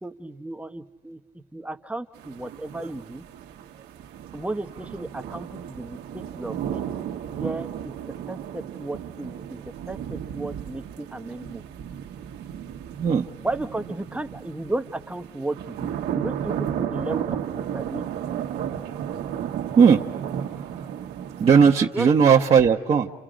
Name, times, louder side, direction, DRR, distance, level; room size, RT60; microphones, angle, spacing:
voice 1, 0.0-3.2 4.3-6.8 7.4-7.9 8.3-11.6 13.4-15.9 16.1-18.1 21.9-22.2, right 2 dB, 5° right, 9 dB, 0.8 m, -34 dB
sound 1, 2.1-21.7, right 9 dB, 75° right, 1.1 m, -34 dB
voice 2, 20.5-20.9 21.4-23.1, right 6 dB, 35° right, -1 dB, 0.9 m, -17 dB
29.5 x 29.5 x 5.1 m, 1.2 s
cardioid pair, 110°, 17 cm